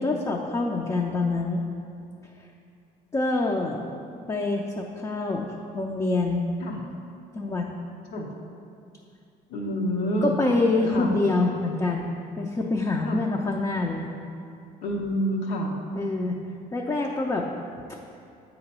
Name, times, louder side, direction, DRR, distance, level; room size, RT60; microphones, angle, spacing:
voice 1, 0.0-1.6 2.4-2.5 3.1-3.8 4.3-6.5 7.3-7.7 10.2-12.1 12.4-14.1 16.0-16.4 16.7-17.4, left 2 dB, 20° left, 0 dB, 0.4 m, -26 dB
voice 2, 9.5-10.4 10.9-11.1 13.0-13.2 14.8-15.7, equal, 90° left, 0 dB, 0.9 m, -28 dB
7.5 x 2.9 x 5.4 m, 2.5 s
cardioid pair, 110°, 17 cm